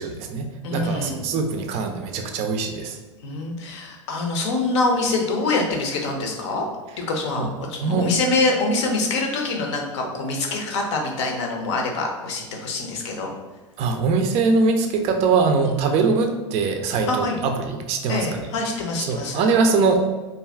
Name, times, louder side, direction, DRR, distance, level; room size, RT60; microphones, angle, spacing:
voice 1, 0.0-3.0 7.4-7.5 7.8-8.1 13.8-18.5 19.1-20.1, right 4 dB, 40° right, 5 dB, 0.4 m, -22 dB
voice 2, 0.6-1.2 3.2-6.6 7.0-13.3 15.7-15.8 17.1-17.4 18.1-19.4, left 3 dB, 65° left, 2 dB, 0.6 m, -25 dB
2.5 x 2.3 x 3.3 m, 1.2 s
hypercardioid pair, 90°, 16 cm